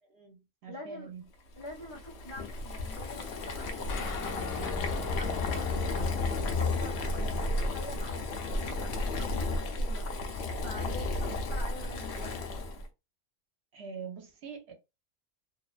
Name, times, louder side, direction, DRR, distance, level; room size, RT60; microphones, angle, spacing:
voice 1, 0.0-1.2 13.7-14.7, right 5 dB, 65° right, 0.9 m, -44 dB
voice 2, 0.7-1.1 1.6-9.5 9.7-10.1 10.6-12.4, left 1 dB, 45° left, 0.3 m, -46 dB
Boiling, 1.6-12.9, left 2 dB, 65° left, 0.7 m, -33 dB
sound 1, 3.9-9.0, left 3 dB, 85° left, 1.0 m, -43 dB
2.6 x 2.1 x 2.3 m
omnidirectional pair, 1.3 m